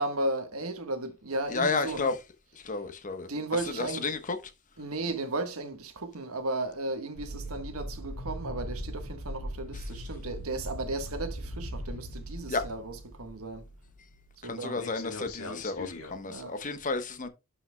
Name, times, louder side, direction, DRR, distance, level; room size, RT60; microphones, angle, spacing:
voice 1, 0.0-2.1 3.3-4.1 4.8-13.6 14.4-14.8 16.3-16.5, right 2 dB, 80° right, 1.4 m, -35 dB
voice 2, 1.5-2.2 2.6-3.3 3.7-4.4 12.5-12.6 14.4-17.3, left 4 dB, 35° left, 1.1 m, -31 dB
sound 1, 7.2-14.4 14.7-16.2, equal, 90° left, 1.9 m, -40 dB
11.5 x 5.7 x 2.3 m
head